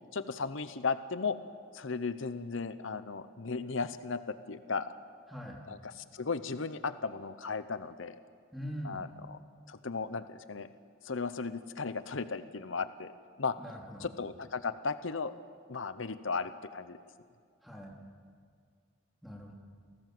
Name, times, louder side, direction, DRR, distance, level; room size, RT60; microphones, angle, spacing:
voice 1, 0.1-1.4 1.7-4.9 5.7-8.2 8.8-9.4 9.7-10.7 11.0-13.1 13.4-13.6 14.0-15.3 15.7-17.0, left 4 dB, 85° left, 12 dB, 0.9 m, -36 dB
voice 2, 5.3-5.6 8.5-9.1 13.6-14.1 17.6-18.0 19.2-19.5, equal, ahead, -1 dB, 3.4 m, -42 dB
29.0 x 18.0 x 7.8 m, 2.1 s
head